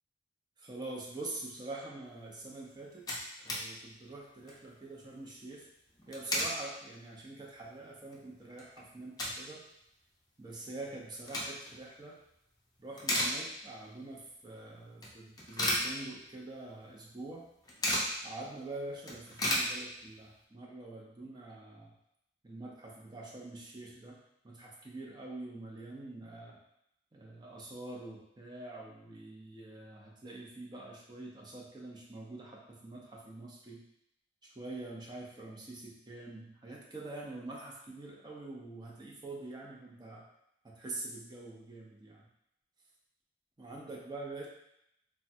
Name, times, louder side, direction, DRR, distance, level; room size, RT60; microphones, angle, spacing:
voice 1, 0.6-3.0 3.4-5.7 6.1-9.6 10.4-12.2 12.8-17.5 18.2-21.9 22.4-24.2 24.4-26.6 27.1-33.8 34.6-40.2 40.6-42.3 43.6-44.5, right 2 dB, 25° right, -2 dB, 0.6 m, -45 dB
sound 1, 2.5-2.6 2.8-3.7 4.0-4.1 4.4-4.7 5.9-6.6 7.1-7.2 7.7-7.8 8.1-9.5 9.8-9.9 10.9-11.8 12.3-12.6 12.9-13.9 14.2-14.3 15.0-16.5 16.8-16.9 17.1-18.2 18.6-18.7 18.9-20.3, left 1 dB, 20° left, 0.5 m, -34 dB
3.2 x 2.2 x 2.7 m, 0.79 s
head